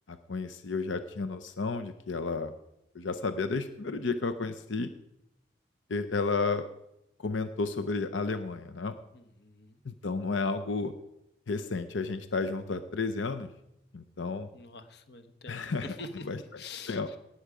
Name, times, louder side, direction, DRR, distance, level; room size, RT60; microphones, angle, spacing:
voice 1, 0.1-2.5 2.9-4.9 5.9-6.6 7.2-9.0 9.8-10.9 11.5-13.5 13.9-14.5 15.5-16.0 16.2-16.4 16.9-17.1, left 3 dB, 90° left, 9 dB, 0.7 m, -32 dB
voice 2, 9.1-9.8 14.5-16.3 16.6-17.2, left 3 dB, 60° left, 9 dB, 1.1 m, -45 dB
18.5 x 8.0 x 4.9 m, 0.84 s
head